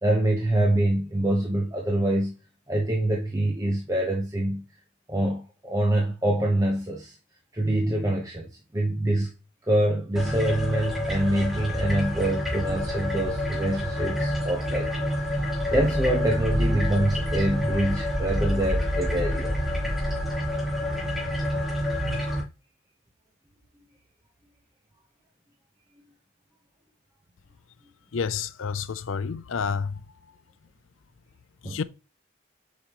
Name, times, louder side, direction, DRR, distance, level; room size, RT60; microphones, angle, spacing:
voice 1, 0.0-2.3 2.7-4.6 5.1-7.1 7.5-9.3 9.6-14.9 15.2-15.4 15.7-19.5 31.6-31.8, right 1 dB, 15° right, 0.9 m, -25 dB
sound 1, 10.2-22.4, left 1 dB, ahead, 3.3 m, -27 dB
voice 2, 28.1-30.0 31.6-31.8, left 6 dB, 85° left, 0.5 m, -29 dB
8.2 x 5.3 x 3.0 m
head